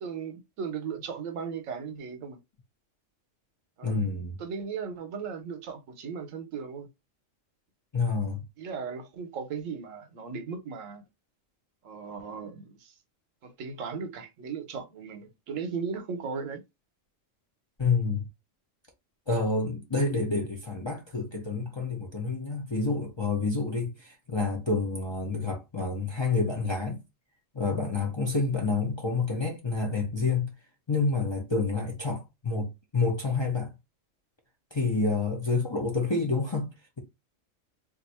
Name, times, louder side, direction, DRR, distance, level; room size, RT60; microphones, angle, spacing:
voice 1, 0.0-2.4 3.8-4.0 4.4-6.9 8.6-11.0 11.8-12.9 13.4-16.6, right 6 dB, 80° right, 1.1 m, -37 dB
voice 2, 3.8-4.4 7.9-8.4 17.8-18.3 19.3-27.0 27.5-30.5 30.9-33.7 34.7-36.7, left 3 dB, 30° left, 0.5 m, -28 dB
2.6 x 2.5 x 4.1 m
omnidirectional pair, 1.3 m